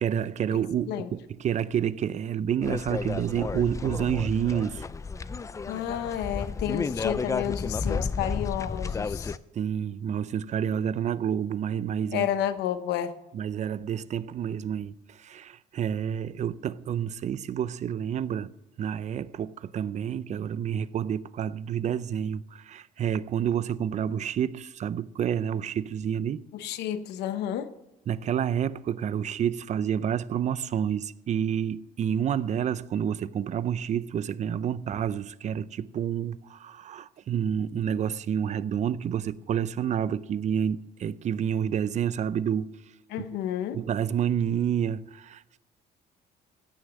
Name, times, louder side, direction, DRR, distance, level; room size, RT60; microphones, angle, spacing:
voice 1, 0.0-4.8 9.5-12.3 13.3-18.5 18.8-26.4 28.1-42.7 43.7-45.6, right 9 dB, 45° right, 0.6 m, -29 dB
sound 1, 2.6-9.4, left 4 dB, 20° left, 0.4 m, -32 dB
voice 2, 5.7-9.4 12.1-13.1 26.5-27.7 43.1-43.8, left 10 dB, 85° left, 1.0 m, -31 dB
16.0 x 6.4 x 7.3 m
cardioid pair, 110°, 17 cm